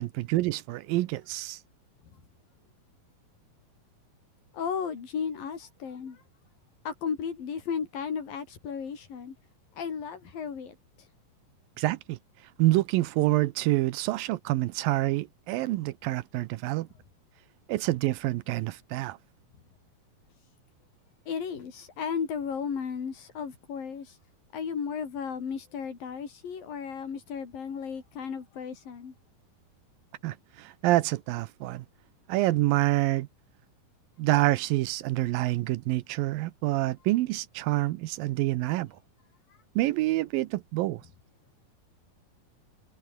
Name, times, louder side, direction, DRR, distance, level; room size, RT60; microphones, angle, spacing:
voice 1, 0.0-1.6 11.8-12.2 12.6-16.9 17.7-19.2 30.2-31.9 32.3-33.3 34.2-39.0 39.8-41.0, right 17 dB, 80° right, 2.5 m, -27 dB
voice 2, 4.5-6.2 6.9-9.4 9.8-10.7 21.3-24.2 24.5-29.1, left 6 dB, 75° left, 5.6 m, -34 dB
omnidirectional pair, 4.1 m